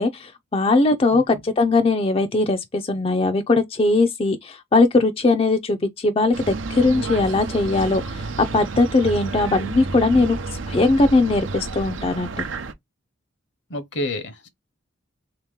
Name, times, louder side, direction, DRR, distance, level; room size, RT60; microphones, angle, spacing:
voice 1, 0.0-10.4 10.7-12.4, left 3 dB, 30° left, 0.4 m, -20 dB
sound 1, 6.3-12.7, right 3 dB, 85° right, 0.6 m, -31 dB
voice 2, 13.7-14.5, left 1 dB, 65° left, 0.9 m, -30 dB
3.5 x 2.9 x 3.6 m
head